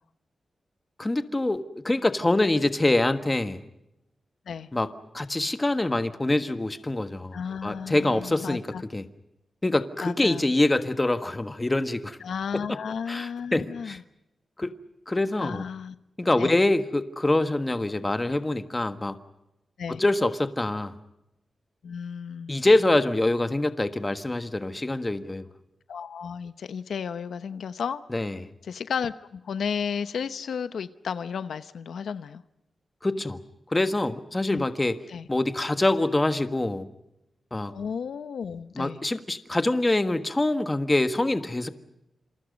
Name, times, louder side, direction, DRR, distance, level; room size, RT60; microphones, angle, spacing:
voice 1, 1.0-3.6 4.7-4.9 5.1-8.7 8.9-9.0 9.6-12.2 12.5-12.6 13.1-14.0 14.6-14.8 15.1-15.6 16.2-19.1 19.9-20.9 22.5-25.5 28.1-28.5 33.0-33.4 33.7-35.0 35.3-36.9 37.5-37.7 38.8-41.7, left 2 dB, 15° left, 9 dB, 1.4 m, -25 dB
voice 2, 7.3-8.8 10.0-10.5 12.2-14.0 15.4-15.9 16.4-16.6 19.8-20.0 21.8-22.5 25.9-28.0 28.6-32.4 34.5-34.6 35.1-35.3 37.7-39.0, left 6 dB, 90° left, 12 dB, 0.9 m, -33 dB
27.5 x 27.0 x 5.3 m, 0.89 s
wide cardioid pair, 135°, 0 cm